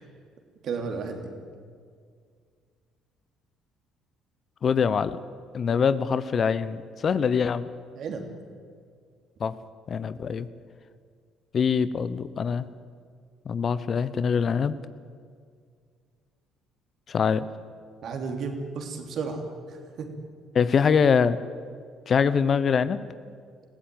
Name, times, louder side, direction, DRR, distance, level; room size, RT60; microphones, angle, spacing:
voice 1, 0.6-1.3 7.9-8.3 18.0-20.1, right 4 dB, 55° right, 4 dB, 3.1 m, -33 dB
voice 2, 4.6-5.2 5.5-7.7 9.4-9.5 9.9-10.5 11.5-12.7 13.4-14.7 17.1-17.4 20.5-21.4 22.1-23.0, left 6 dB, 45° left, 15 dB, 0.9 m, -23 dB
21.5 x 16.0 x 9.3 m, 2.1 s
hypercardioid pair, 55°, 0 cm